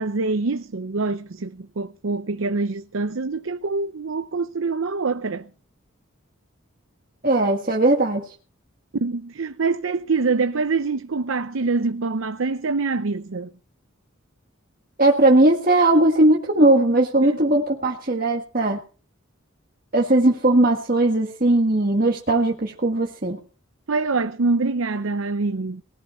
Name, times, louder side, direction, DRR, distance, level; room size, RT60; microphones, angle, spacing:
voice 1, 0.0-5.5 8.9-13.5 17.2-17.4 23.9-25.8, right 3 dB, 75° right, 0.7 m, -25 dB
voice 2, 7.2-8.2 15.0-18.8 19.9-23.4, right 2 dB, 40° right, 1.6 m, -18 dB
19.5 x 13.5 x 4.3 m
head